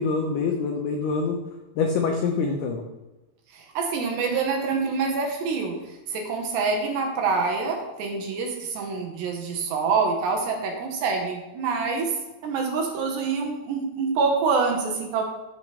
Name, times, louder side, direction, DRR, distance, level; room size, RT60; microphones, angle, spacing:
voice 1, 0.0-1.4 1.8-2.8, left 4 dB, 85° left, 2 dB, 2.2 m, -25 dB
voice 2, 3.5-12.1 12.4-15.2, right 4 dB, 70° right, 1 dB, 3.1 m, -26 dB
14.5 x 7.1 x 3.3 m, 1.1 s
omnidirectional pair, 5.7 m